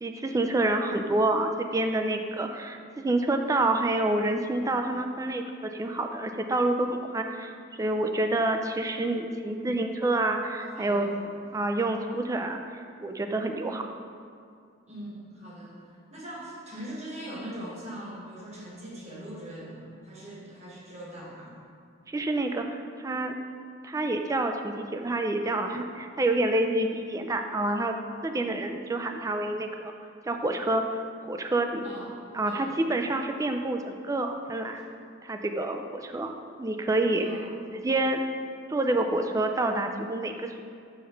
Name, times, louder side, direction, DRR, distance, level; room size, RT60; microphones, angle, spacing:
voice 1, 0.0-2.8 3.0-11.1 11.5-13.8 22.1-23.4 23.8-27.9 28.2-29.9 30.3-31.9 32.3-34.8 35.2-37.3 37.7-38.2 38.7-40.6, right 2 dB, 15° right, 5 dB, 0.3 m, -28 dB
voice 2, 10.6-11.3 14.9-15.8 16.1-21.6 31.8-32.1 32.5-32.8 37.2-37.5, right 1 dB, 35° right, -5 dB, 1.3 m, -41 dB
5.6 x 3.2 x 5.6 m, 2.3 s
head